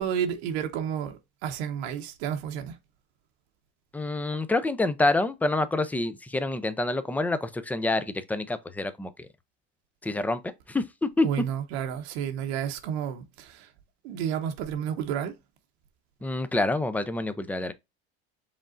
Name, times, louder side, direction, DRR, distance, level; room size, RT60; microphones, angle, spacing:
voice 1, 0.0-2.8 11.2-13.7 14.0-15.3, right 9 dB, 85° right, 1.0 m, -31 dB
voice 2, 3.9-9.3 10.0-10.4 10.7-11.3 16.2-17.7, left 2 dB, 5° left, 0.5 m, -27 dB
5.2 x 3.6 x 2.5 m
supercardioid pair, 115°, 32 cm